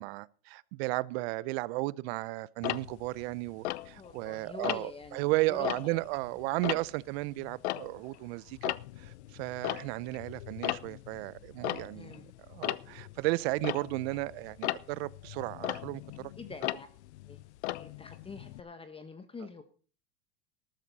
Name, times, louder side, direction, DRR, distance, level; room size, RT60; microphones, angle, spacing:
voice 1, 0.0-12.2 12.5-16.3, right 21 dB, 65° right, 0.7 m, -34 dB
Tick-tock, 2.6-4.3 4.6-5.1 5.5-8.2 8.5-18.6, left 17 dB, 85° left, 0.6 m, -37 dB
voice 2, 3.9-6.0 11.9-12.3 16.4-16.9 17.3-17.4 17.8-19.6, left 4 dB, 15° left, 1.2 m, -46 dB
13.5 x 13.0 x 4.1 m
supercardioid pair, 115°, 33 cm